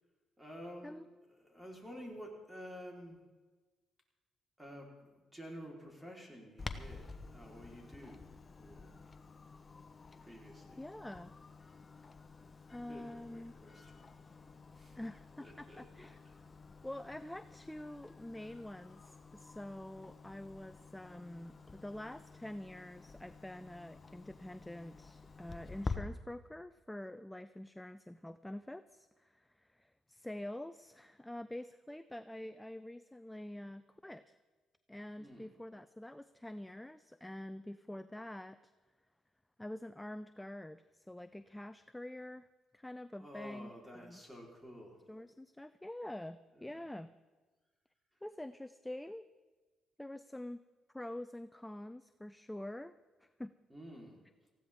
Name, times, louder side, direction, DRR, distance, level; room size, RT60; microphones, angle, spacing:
voice 1, 0.4-0.9 1.3-3.2 4.6-8.9 10.2-10.8 12.9-15.1 15.4-16.4 35.2-35.5 43.2-45.1 46.5-46.9 53.7-54.2, equal, 10° right, -1 dB, 4.1 m, -51 dB
Clock, 6.6-26.0, left 4 dB, 30° left, 1.0 m, -50 dB
voice 2, 10.8-11.3 12.7-13.6 15.0-16.2 16.8-34.4 34.9-38.7 39.6-42.5 42.7-44.2 45.1-47.1 48.2-49.2 50.0-50.6 50.9-52.9 53.4-53.5, left 1 dB, 10° left, 12 dB, 0.5 m, -46 dB
19.5 x 15.0 x 3.7 m, 1.3 s
cardioid pair, 90°, 0 cm